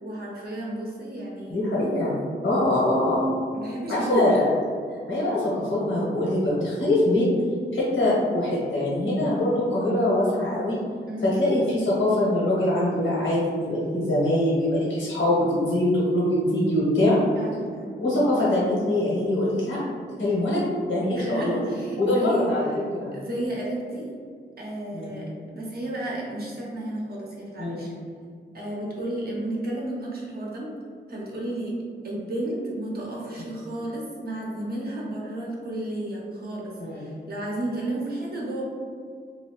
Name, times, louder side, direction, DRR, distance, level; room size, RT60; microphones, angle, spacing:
voice 1, 0.0-1.8 3.5-4.3 11.1-11.4 17.3-17.9 21.1-22.8 23.1-24.1 24.6-27.9 28.5-30.7 31.1-31.7 32.0-38.6, right 1 dB, 55° right, -4 dB, 0.9 m, -32 dB
voice 2, 1.5-2.2 2.4-3.2 3.9-4.5 5.1-7.3 7.7-10.8 11.2-17.2 18.0-19.8 20.2-20.6 20.9-21.6 22.0-22.7 22.9-23.1 24.9-25.2 27.6-27.8 36.8-37.0, left 1 dB, 85° left, -7 dB, 1.2 m, -23 dB
2.8 x 2.7 x 3.1 m, 2.1 s
wide cardioid pair, 105°, 19 cm